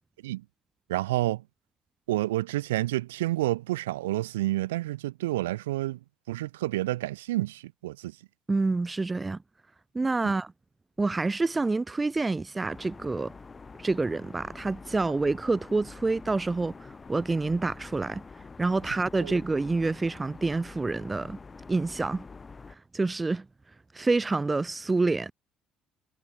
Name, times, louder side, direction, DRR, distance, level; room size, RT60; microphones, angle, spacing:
voice 1, 0.9-1.4 2.1-6.0 6.3-8.1 10.2-10.3 19.2-19.3, right 16 dB, 85° right, 3.0 m, -29 dB
voice 2, 8.5-9.4 9.9-10.5 11.0-13.3 13.8-18.2 18.6-21.4 21.7-22.3 22.9-23.4 23.9-25.3, right 3 dB, 20° right, 1.0 m, -27 dB
sound 1, 12.7-22.8, left 4 dB, 30° left, 5.2 m, -46 dB
hypercardioid pair, 55°, 0 cm